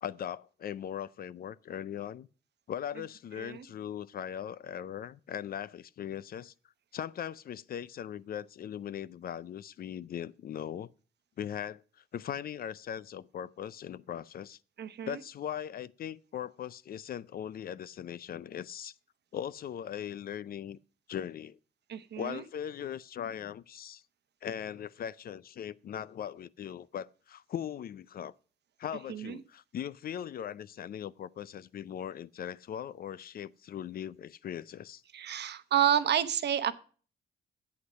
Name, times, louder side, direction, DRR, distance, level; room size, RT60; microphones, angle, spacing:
voice 1, 0.0-2.3 2.7-6.5 6.9-10.9 11.4-14.6 15.0-19.0 19.3-20.8 21.1-21.6 22.2-24.0 24.4-28.3 28.8-35.0, left 9 dB, 50° left, 0.4 m, -39 dB
voice 2, 14.8-15.2 21.9-22.4 29.1-29.4 35.1-36.7, right 10 dB, 60° right, 0.9 m, -29 dB
8.5 x 8.0 x 6.2 m
cardioid pair, 90°, 20 cm